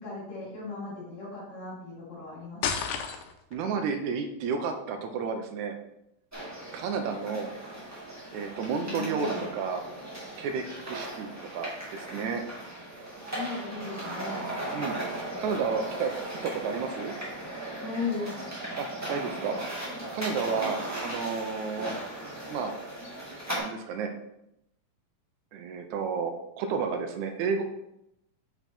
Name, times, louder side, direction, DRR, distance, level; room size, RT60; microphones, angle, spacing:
voice 1, 0.0-2.9 8.8-9.5 13.3-14.5 17.8-18.3, left 4 dB, 50° left, -7 dB, 3.3 m, -37 dB
sound 1, 2.6-3.6, left 7 dB, 80° left, 2.0 m, -31 dB
voice 2, 3.5-5.8 6.7-7.5 8.3-9.8 10.4-12.4 14.7-14.9 15.4-16.1 16.4-17.2 18.8-21.9 22.5-22.7 23.5-24.1 25.5-27.6, right 5 dB, 75° right, 5 dB, 1.8 m, -32 dB
sound 2, 6.3-23.6, right 1 dB, 10° right, 0.8 m, -37 dB
5.9 x 5.7 x 4.3 m, 0.81 s
omnidirectional pair, 4.1 m